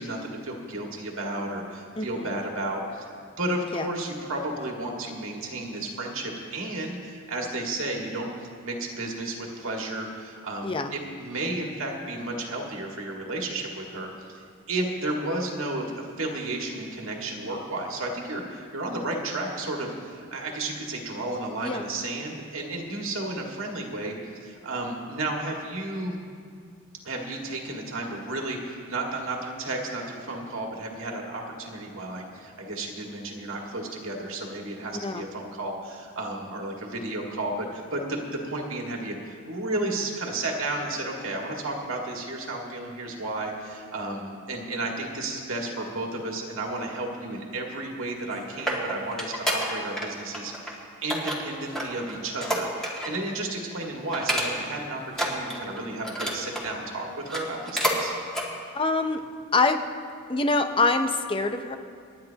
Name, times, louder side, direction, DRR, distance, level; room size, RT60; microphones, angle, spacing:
voice 1, 0.0-3.1 3.4-8.3 8.6-24.1 24.4-26.2 27.0-58.1, right 2 dB, 70° right, 0 dB, 1.9 m, -33 dB
voice 2, 2.0-2.3 3.7-3.9 10.6-10.9 21.6-21.8 35.0-35.2 58.7-59.2 59.5-59.8 60.3-61.8, left 3 dB, 25° left, 7 dB, 0.7 m, -25 dB
sound 1, 48.1-50.1 50.3-50.7 51.1-53.2 53.6-53.7 54.1-54.8 55.1-56.7 57.2-58.0 58.3-58.5 59.0-59.1, equal, ahead, 2.0 m, -29 dB
28.0 x 10.0 x 2.9 m, 2.2 s
head